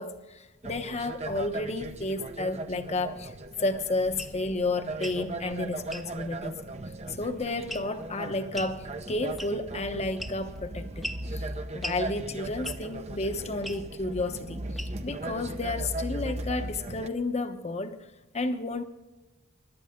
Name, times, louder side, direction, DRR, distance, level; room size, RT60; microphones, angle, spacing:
voice 1, 0.0-3.3 3.6-6.6 7.1-18.0 18.3-18.8, left 2 dB, 30° left, 1.1 m, -32 dB
sound 1, 0.6-17.1, right 2 dB, 35° right, 0.9 m, -38 dB
sound 2, 4.2-4.4 4.9-5.2 5.9-6.1 7.7-8.0 8.5-8.8 9.4-9.7 10.2-10.6 11.0-11.3 11.8-12.0 12.6-12.9 13.6-13.8 14.8-15.1, equal, ahead, 0.8 m, -38 dB
25.0 x 11.5 x 3.7 m
head